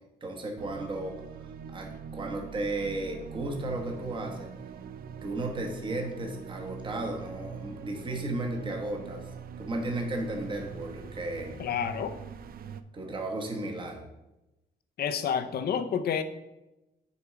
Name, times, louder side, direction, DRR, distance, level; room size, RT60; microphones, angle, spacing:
voice 1, 0.2-4.5 5.2-9.2 9.6-11.6 12.9-14.0, right 2 dB, 30° right, 1 dB, 1.2 m, -34 dB
sound 1, 0.6-12.8, right 7 dB, 55° right, 0.5 m, -43 dB
voice 2, 11.6-12.1 15.0-16.2, left 7 dB, 65° left, 9 dB, 0.7 m, -29 dB
7.0 x 4.5 x 6.1 m, 0.96 s
wide cardioid pair, 160°, 18 cm